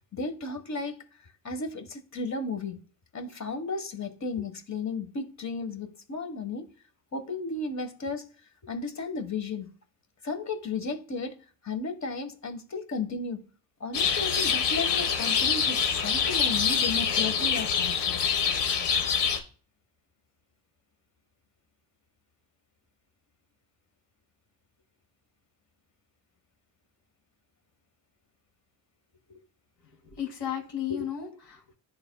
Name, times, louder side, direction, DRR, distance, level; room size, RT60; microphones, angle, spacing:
voice 1, 0.1-1.0 1.4-2.8 3.1-6.7 7.1-8.3 8.6-9.7 10.2-11.4 11.6-13.4 13.8-18.2 30.9-31.1, left 3 dB, 40° left, 1.5 m, -34 dB
sound 1, 13.9-19.4, left 7 dB, 70° left, 1.5 m, -25 dB
voice 2, 30.0-31.7, left 10 dB, 85° left, 3.3 m, -34 dB
10.5 x 4.1 x 2.3 m
supercardioid pair, 70°, 42 cm